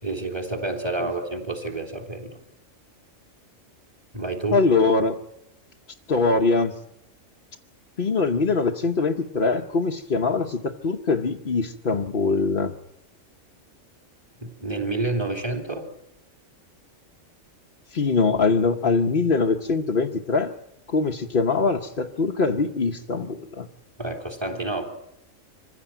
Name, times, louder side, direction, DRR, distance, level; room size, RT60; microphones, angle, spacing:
voice 1, 0.0-2.4 4.1-4.6 14.4-15.9 24.0-24.9, right 2 dB, 20° right, 4 dB, 3.2 m, -29 dB
voice 2, 4.5-5.2 6.1-6.7 8.0-12.7 17.9-20.5 20.9-23.7, left 4 dB, 45° left, 1 dB, 1.1 m, -22 dB
25.0 x 16.0 x 9.0 m, 0.85 s
omnidirectional pair, 1.4 m